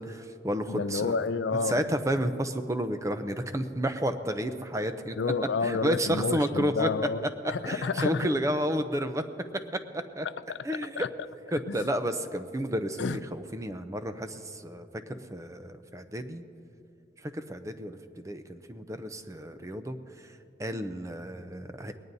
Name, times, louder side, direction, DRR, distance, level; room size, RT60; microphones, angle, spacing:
voice 1, 0.0-1.1 1.7-5.2 5.6-6.9 7.6-9.2 9.9-10.3 10.6-11.0 11.5-16.4 17.2-20.0 20.6-21.9, equal, 15° right, 8 dB, 0.5 m, -31 dB
voice 2, 0.7-1.8 5.2-8.3 10.5-11.1 11.7-11.9 13.0-13.2, left 4 dB, 80° left, 14 dB, 0.4 m, -30 dB
20.5 x 18.5 x 2.7 m, 2.7 s
head